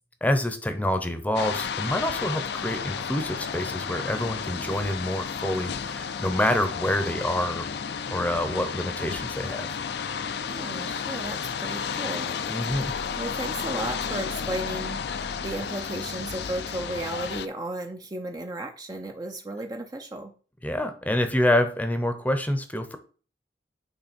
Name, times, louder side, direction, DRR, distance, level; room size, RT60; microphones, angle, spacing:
voice 1, 0.2-7.7 8.1-9.7 12.5-12.9 20.6-23.0, left 1 dB, 10° left, 8 dB, 0.7 m, -27 dB
sound 1, 1.4-17.5, left 6 dB, 65° left, 0.5 m, -32 dB
voice 2, 10.4-12.4 13.2-20.3, right 1 dB, 20° right, 5 dB, 0.5 m, -34 dB
8.8 x 3.3 x 4.3 m, 0.39 s
head